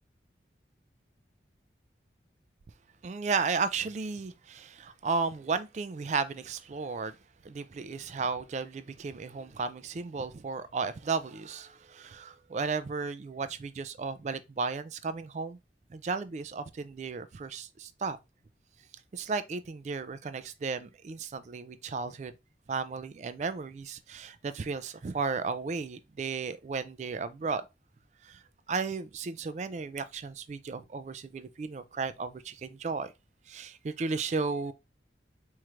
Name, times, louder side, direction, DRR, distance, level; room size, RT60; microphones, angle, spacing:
voice 1, 3.0-7.2 7.4-15.6 15.9-18.2 19.1-22.3 22.7-27.7 28.2-28.4 28.7-33.1 33.5-34.7, right 4 dB, 40° right, 0.3 m, -34 dB
4.4 x 3.1 x 2.5 m
head